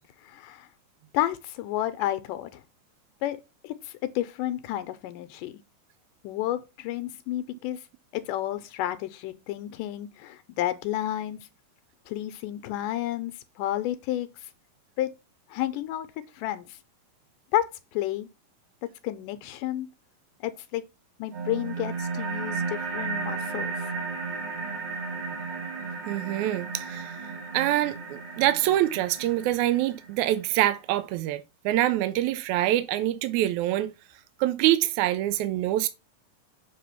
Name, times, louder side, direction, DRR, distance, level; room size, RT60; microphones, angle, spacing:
voice 1, 0.2-0.7 1.1-2.6 3.2-5.5 6.2-7.8 8.1-11.4 12.1-14.5 15.0-15.1 15.5-16.1 16.3-16.8 17.5-18.3 19.0-19.9 20.4-20.8 21.2-23.9, left 13 dB, 80° left, 2.1 m, -31 dB
sound 1, 21.3-30.3, right 4 dB, 55° right, 3.4 m, -34 dB
voice 2, 26.1-27.2 27.5-33.9 34.4-35.9, right 14 dB, 85° right, 1.7 m, -25 dB
7.5 x 3.3 x 5.7 m
omnidirectional pair, 3.9 m